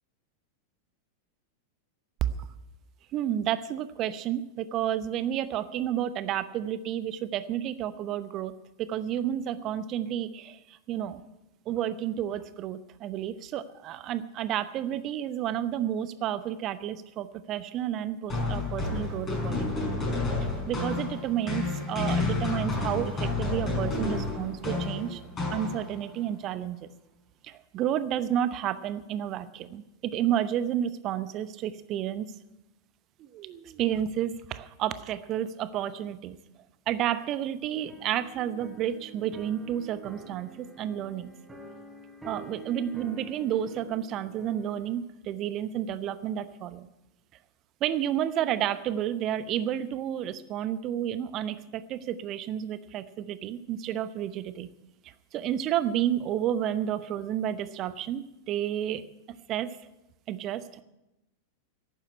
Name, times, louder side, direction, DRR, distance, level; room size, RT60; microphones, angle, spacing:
voice 1, 3.1-8.5 8.8-11.2 11.7-20.0 20.4-25.2 25.5-26.8 27.4-32.3 33.2-36.4 36.9-41.3 42.2-46.9 47.8-54.7 55.3-59.0 59.5-59.8 60.3-60.8, right 10 dB, 35° right, 14 dB, 0.8 m, -31 dB
sound 1, 18.3-26.1, left 3 dB, 25° left, 5.8 m, -30 dB
sound 2, 37.8-45.0, right 3 dB, 5° right, 3.6 m, -47 dB
11.5 x 8.9 x 9.7 m, 0.94 s
figure-of-eight pair, 90°, 0 cm